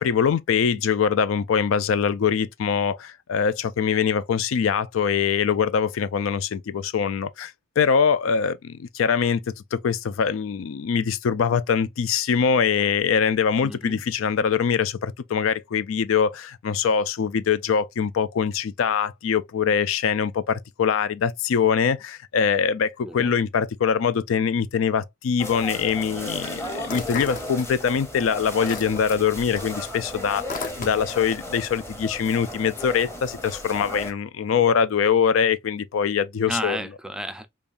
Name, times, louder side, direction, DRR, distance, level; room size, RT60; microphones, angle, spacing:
voice 1, 0.0-9.4 9.7-36.8, left 7 dB, 80° left, 0.4 m, -23 dB
voice 2, 13.6-14.0 23.0-23.3 36.5-37.5, equal, 5° right, 0.4 m, -32 dB
sound 1, 25.4-34.1, left 1 dB, 15° left, 0.8 m, -35 dB
sound 2, 26.8-28.1 28.4-31.3, left 4 dB, 45° left, 0.7 m, -36 dB
5.1 x 2.3 x 2.4 m
head